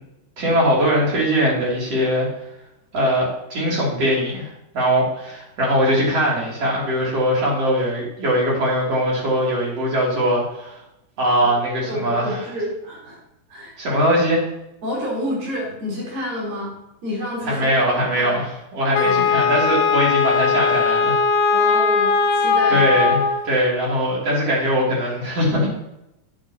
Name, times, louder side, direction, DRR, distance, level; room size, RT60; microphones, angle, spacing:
voice 1, 0.4-2.3 2.9-10.8 11.2-12.4 13.8-14.4 17.4-21.2 22.7-25.7, equal, 45° right, -5 dB, 3.8 m, -21 dB
voice 2, 11.9-13.2 13.5-13.7 14.8-16.7 17.0-17.7 18.1-18.4 19.0-19.3 21.5-22.9, left 1 dB, 70° right, -5 dB, 5.8 m, -28 dB
Wind instrument woodwind instrument, 18.9-23.5, left 5 dB, 75° left, 1.6 m, -19 dB
11.0 x 9.7 x 2.9 m, 0.87 s
omnidirectional pair, 4.2 m